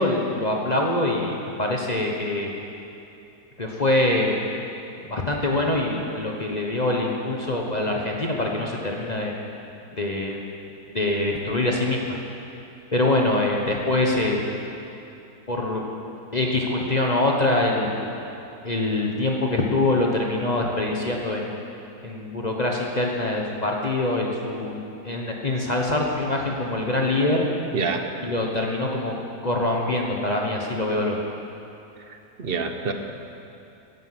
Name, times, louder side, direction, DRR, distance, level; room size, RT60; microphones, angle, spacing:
voice 1, 0.0-2.5 3.6-4.5 5.0-9.3 9.9-10.4 10.9-12.2 12.9-14.4 15.5-15.8 16.3-18.1 18.6-21.5 22.0-24.8 25.0-27.4 28.2-29.2 29.4-31.2, left 2 dB, 30° left, -1 dB, 1.1 m, -24 dB
voice 2, 27.7-28.1 32.1-32.9, right 4 dB, 45° right, 6 dB, 1.0 m, -27 dB
15.5 x 11.0 x 5.9 m, 2.8 s
omnidirectional pair, 1.6 m